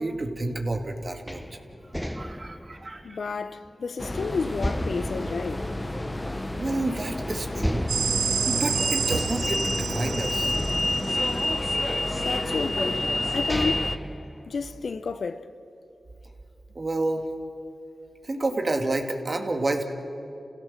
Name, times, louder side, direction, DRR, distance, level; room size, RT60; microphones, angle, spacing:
voice 1, 0.0-1.4 2.1-3.2 6.5-7.8 8.4-10.6 16.7-17.2 18.2-19.8, right 2 dB, 45° right, 2.2 m, -29 dB
sound 1, 1.3-4.1 4.6-6.5 6.9-7.0 7.6-10.0 10.5-12.1 12.8-12.9 13.3-15.1, equal, 5° left, 0.7 m, -35 dB
voice 2, 3.0-5.7 12.2-14.0 14.5-15.5, left 4 dB, 70° left, 0.8 m, -31 dB
sound 2, 4.0-14.0, left 1 dB, 20° left, 1.0 m, -29 dB
sound 3, 7.9-11.6, right 6 dB, 80° right, 0.6 m, -29 dB
29.5 x 16.0 x 7.5 m
cardioid pair, 40°, 0 cm